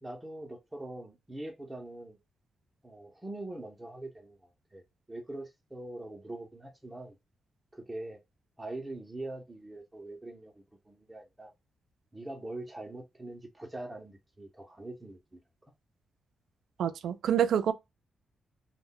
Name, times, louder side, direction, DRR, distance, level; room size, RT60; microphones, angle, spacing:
voice 1, 0.0-2.2 2.8-4.8 5.1-7.2 7.7-8.2 8.6-11.5 12.1-15.4, right 2 dB, 15° right, 0.5 m, -43 dB
voice 2, 16.8-17.7, right 9 dB, 85° right, 0.3 m, -27 dB
2.1 x 2.1 x 3.6 m
wide cardioid pair, 140°, 0 cm